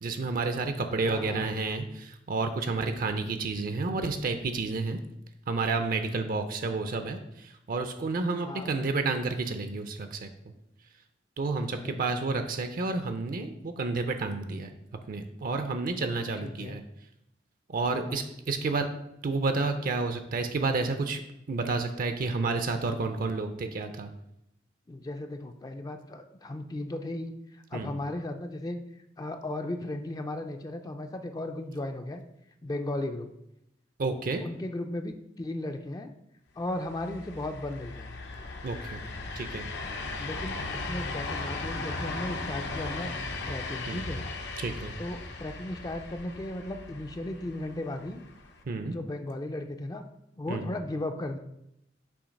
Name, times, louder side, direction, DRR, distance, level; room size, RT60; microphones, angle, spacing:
voice 1, 0.0-5.0 5.5-10.3 11.4-14.7 15.1-16.8 17.7-18.9 19.2-21.2 21.5-24.1 27.7-27.9 34.0-34.4 38.6-39.0 39.4-39.6 43.9-44.0 44.6-44.9 48.7-49.0 50.5-50.7, right 3 dB, 50° right, 7 dB, 0.5 m, -30 dB
voice 2, 1.0-1.5 8.4-8.7 11.6-12.0 16.4-16.8 17.8-18.3 24.9-28.8 29.2-32.2 32.6-33.3 34.4-36.1 36.6-38.1 40.2-43.1 43.5-44.2 45.0-48.2 48.8-50.0 50.4-51.4, left 1 dB, 20° left, 6 dB, 0.4 m, -36 dB
sound 1, 36.7-48.6, left 3 dB, 65° left, 0.7 m, -37 dB
7.0 x 2.8 x 5.1 m, 0.81 s
head